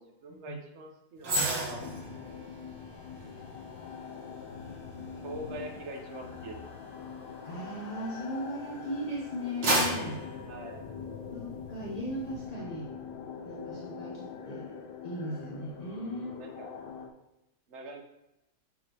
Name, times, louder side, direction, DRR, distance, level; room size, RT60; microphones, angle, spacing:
voice 1, 0.0-1.9 3.0-4.0 5.2-6.6 10.4-10.9 16.3-16.7 17.7-18.0, right 2 dB, 45° right, 2 dB, 1.1 m, -43 dB
sound 1, 1.2-8.6 9.1-11.5 11.8-12.0, right 1 dB, 80° right, 2.1 m, -35 dB
sound 2, 1.7-17.1, left 6 dB, 75° left, 1.3 m, -43 dB
voice 2, 7.4-10.2 11.3-12.9 13.4-14.8 15.0-16.4, equal, 35° left, -5 dB, 0.6 m, -37 dB
6.4 x 5.9 x 2.9 m, 0.90 s
omnidirectional pair, 1.9 m